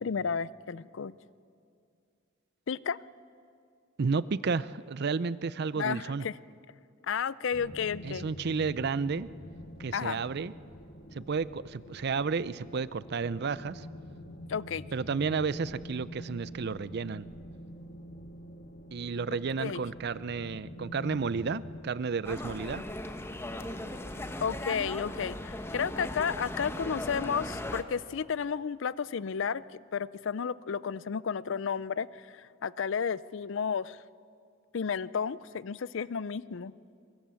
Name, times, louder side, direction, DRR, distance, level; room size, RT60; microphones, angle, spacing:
voice 1, 0.0-1.1 2.7-3.0 5.8-6.4 7.1-8.3 9.9-10.2 14.5-14.8 19.6-19.8 24.4-29.6 29.9-34.0 34.7-36.7, left 6 dB, 65° left, 19 dB, 0.5 m, -32 dB
voice 2, 4.0-6.3 8.0-9.3 9.8-10.5 11.1-13.9 14.9-17.3 18.9-22.8, right 5 dB, 50° right, 18 dB, 0.5 m, -32 dB
sound 1, 7.5-21.8, equal, 45° left, 1.5 m, -46 dB
sound 2, 22.2-27.8, left 1 dB, 10° left, 1.0 m, -38 dB
23.0 x 22.0 x 7.0 m, 2.4 s
head